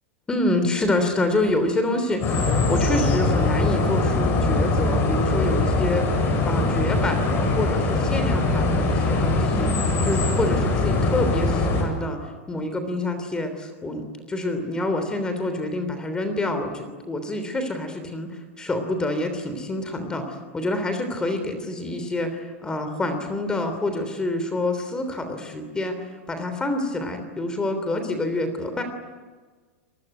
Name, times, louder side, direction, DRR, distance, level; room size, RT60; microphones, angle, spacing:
voice 1, 0.3-6.0 6.4-9.7 10.0-12.2 12.5-28.8, left 2 dB, 10° left, 8 dB, 3.3 m, -27 dB
sound 1, 2.2-11.8, left 2 dB, 35° left, 7.7 m, -22 dB
26.5 x 20.0 x 9.1 m, 1.4 s
supercardioid pair, 135°, 7 cm